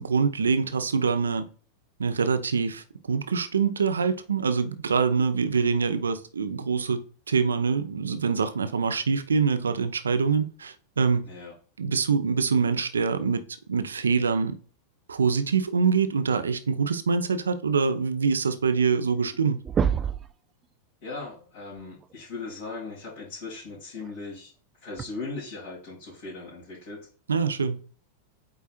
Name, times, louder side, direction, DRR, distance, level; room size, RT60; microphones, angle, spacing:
voice 1, 0.0-1.5 2.0-11.2 11.8-13.4 13.7-14.6 15.1-19.6 27.3-28.0, right 5 dB, 70° right, 0.7 m, -25 dB
sound 1, 19.3-19.4 19.6-20.3 22.0-22.1 24.0-24.1 25.0-25.1, right 7 dB, 25° right, 0.5 m, -26 dB
voice 2, 21.0-24.5 24.8-27.0, left 3 dB, 55° left, 3.4 m, -38 dB
8.7 x 4.6 x 2.5 m
figure-of-eight pair, 90°, 0 cm